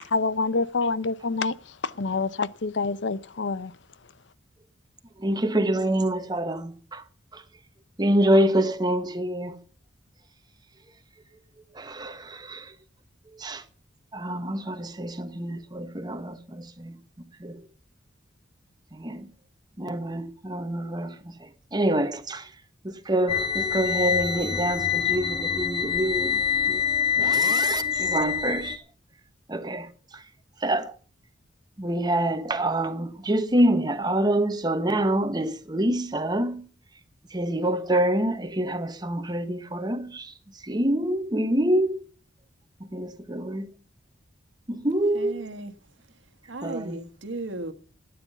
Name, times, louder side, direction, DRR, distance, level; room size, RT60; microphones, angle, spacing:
voice 1, 0.1-1.5 2.0-3.7, left 3 dB, 65° left, 0.7 m, -26 dB
voice 2, 5.2-7.0 7.3-7.4 8.0-9.6 11.7-12.7 13.3-13.6 14.1-17.6 18.9-19.3 19.8-22.5 22.8-26.8 27.2-28.8 29.5-30.2 30.6-30.9 31.8-36.7 37.3-40.3 40.6-42.0 42.8-43.7 44.7-45.5 46.6-47.0, right 1 dB, 20° right, 1.2 m, -26 dB
sound 1, 23.3-28.8, left 7 dB, 35° left, 2.8 m, -25 dB
voice 3, 45.1-45.7 46.5-47.7, right 2 dB, 85° right, 1.5 m, -35 dB
13.0 x 9.6 x 6.9 m
head